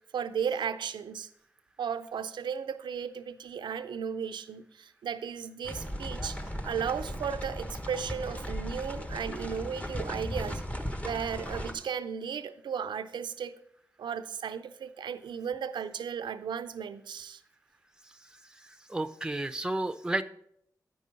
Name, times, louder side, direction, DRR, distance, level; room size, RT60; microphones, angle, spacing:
voice 1, 0.1-1.3 1.8-6.4 6.6-10.6 11.0-13.6 14.0-17.4, right 7 dB, 90° right, 0.4 m, -35 dB
sound 1, 5.6-11.7, equal, 15° left, 1.2 m, -37 dB
voice 2, 18.9-20.2, right 2 dB, 10° right, 0.6 m, -31 dB
9.0 x 5.4 x 5.2 m
cardioid pair, 45°, 8 cm